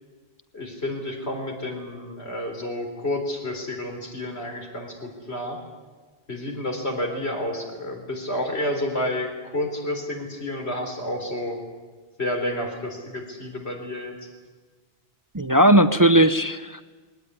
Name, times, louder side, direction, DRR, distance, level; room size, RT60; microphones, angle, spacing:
voice 1, 0.5-5.6 6.3-11.6 12.2-14.2, left 1 dB, 85° left, 3 dB, 4.4 m, -30 dB
voice 2, 15.3-16.8, right 1 dB, 25° right, 11 dB, 0.6 m, -17 dB
20.5 x 18.5 x 9.8 m, 1.4 s
omnidirectional pair, 1.1 m